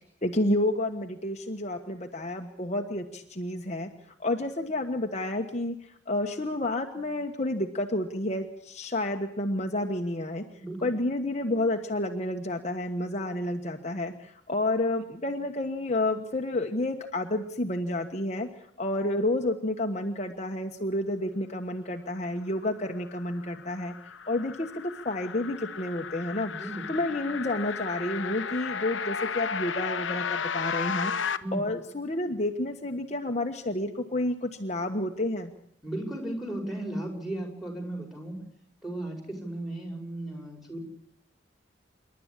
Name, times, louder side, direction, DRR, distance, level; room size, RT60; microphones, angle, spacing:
voice 1, 0.2-3.9 4.2-10.4 10.8-18.5 18.8-26.5 26.9-35.5, left 1 dB, 35° left, 3 dB, 1.3 m, -30 dB
voice 2, 10.6-10.9 26.5-26.9 31.4-31.6 35.8-38.5 38.8-40.8, right 1 dB, ahead, 3 dB, 5.3 m, -35 dB
sound 1, 23.0-31.4, left 6 dB, 90° left, 1.1 m, -34 dB
27.5 x 12.0 x 9.9 m, 0.68 s
head